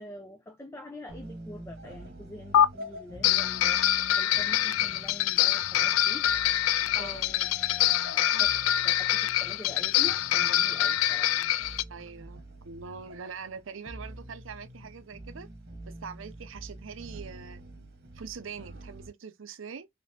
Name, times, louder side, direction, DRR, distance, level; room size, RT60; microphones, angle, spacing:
voice 1, 0.0-6.3 6.8-11.5, left 1 dB, 10° left, 0.5 m, -45 dB
sound 1, 1.1-19.1, equal, 50° right, 1.3 m, -47 dB
sound 2, 2.5-2.7 3.2-11.8, left 12 dB, 75° left, 0.3 m, -25 dB
voice 2, 7.0-7.3 11.9-15.5 15.9-17.6 18.1-19.9, right 6 dB, 70° right, 0.6 m, -43 dB
4.1 x 3.4 x 2.8 m
head